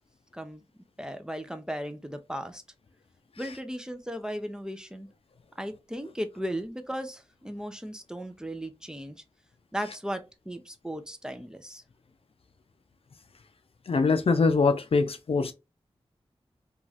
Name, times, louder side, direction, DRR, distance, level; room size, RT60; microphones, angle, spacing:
voice 1, 1.0-2.6 3.4-5.1 5.6-9.2 9.7-11.8, equal, 5° right, 0.5 m, -36 dB
voice 2, 13.9-15.5, left 4 dB, 65° left, 0.4 m, -23 dB
3.0 x 2.4 x 2.7 m
wide cardioid pair, 85°, 11 cm